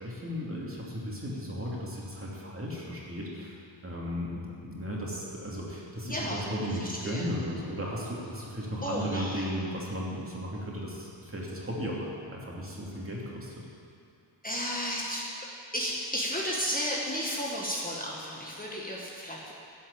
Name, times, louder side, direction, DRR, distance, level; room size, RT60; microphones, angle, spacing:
voice 1, 0.0-4.3 4.6-13.6, equal, 30° right, -4 dB, 2.7 m, -35 dB
voice 2, 6.0-6.5 7.0-7.2 8.8-9.4 14.4-15.3 15.7-19.5, equal, 20° left, -4 dB, 1.6 m, -33 dB
12.0 x 5.6 x 8.7 m, 2.6 s
cardioid pair, 75°, 46 cm